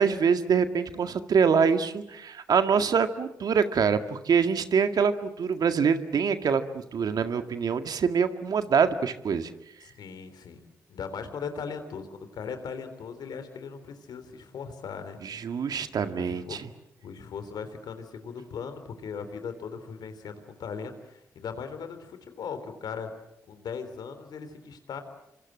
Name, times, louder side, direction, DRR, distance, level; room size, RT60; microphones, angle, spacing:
voice 1, 0.0-9.5 15.2-16.6, right 6 dB, 65° right, 9 dB, 1.9 m, -25 dB
voice 2, 9.8-10.6 10.9-15.2 16.2-16.7 17.0-23.1 23.5-25.0, left 6 dB, 75° left, 9 dB, 3.5 m, -38 dB
27.0 x 25.0 x 7.7 m, 0.84 s
hypercardioid pair, 40°, 7 cm